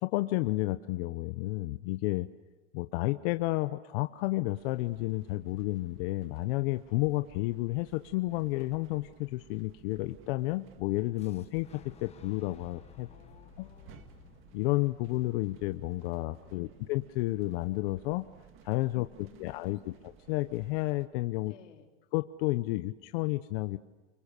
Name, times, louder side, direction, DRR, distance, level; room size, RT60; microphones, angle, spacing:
voice 1, 0.0-2.3 2.7-11.7 12.0-13.1 13.6-13.7 14.5-18.2 18.6-21.5 22.1-23.8, left 19 dB, 50° left, 10 dB, 0.9 m, -31 dB
sound 1, 4.5-21.1, right 8 dB, 35° right, 1.8 m, -58 dB
Fire / Explosion, 11.2-17.0, left 9 dB, 15° left, 1.5 m, -57 dB
voice 2, 13.1-14.1 16.4-16.9 18.9-20.1 21.4-21.9, left 9 dB, 80° left, 3 dB, 3.6 m, -59 dB
29.5 x 24.0 x 6.8 m, 1.2 s
supercardioid pair, 145°, 36 cm